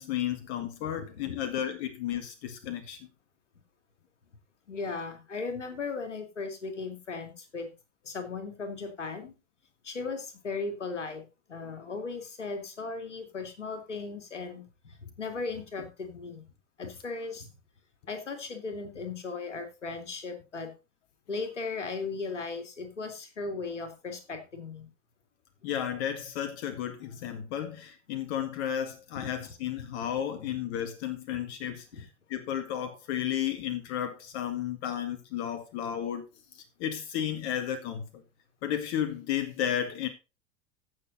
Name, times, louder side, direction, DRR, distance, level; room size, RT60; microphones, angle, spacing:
voice 1, 0.0-3.0 25.6-36.3 36.5-38.2 38.6-40.1, left 10 dB, 60° left, 1.8 m, -33 dB
voice 2, 1.0-1.4 4.7-7.7 8.0-9.3 9.8-11.2 11.5-16.4 16.8-17.5 18.1-20.7 21.3-24.9 29.1-29.5 31.9-32.1, left 4 dB, 90° left, 2.5 m, -37 dB
15.5 x 6.6 x 4.1 m
hypercardioid pair, 80°, 35 cm